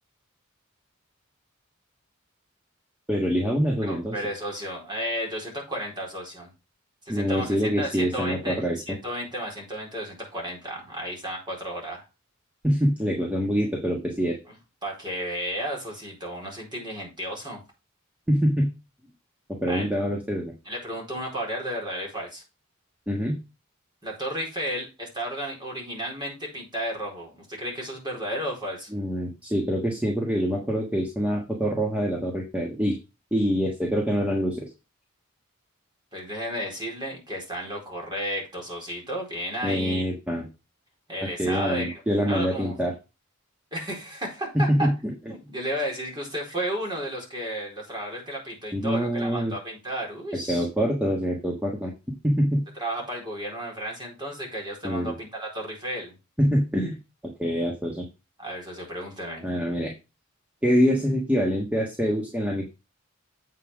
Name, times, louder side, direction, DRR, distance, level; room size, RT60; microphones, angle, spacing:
voice 1, 3.1-4.1 7.1-8.8 12.6-14.4 18.3-18.7 19.6-20.5 23.1-23.4 28.9-33.0 33.3-34.7 39.6-40.5 41.4-42.9 44.5-44.9 48.7-49.5 50.5-52.6 54.8-55.1 56.4-57.0 57.2-58.1 59.4-59.9 60.6-62.7, equal, 5° right, 0 dB, 1.5 m, -25 dB
voice 2, 3.8-6.5 7.0-12.0 14.5-14.6 14.8-17.6 19.7-19.9 20.6-22.4 24.0-28.9 36.1-40.0 41.1-41.9 42.3-42.8 43.7-44.9 45.3-50.7 52.8-56.1 58.4-59.4, equal, 20° right, -1 dB, 4.3 m, -33 dB
8.1 x 5.8 x 4.9 m, 0.27 s
head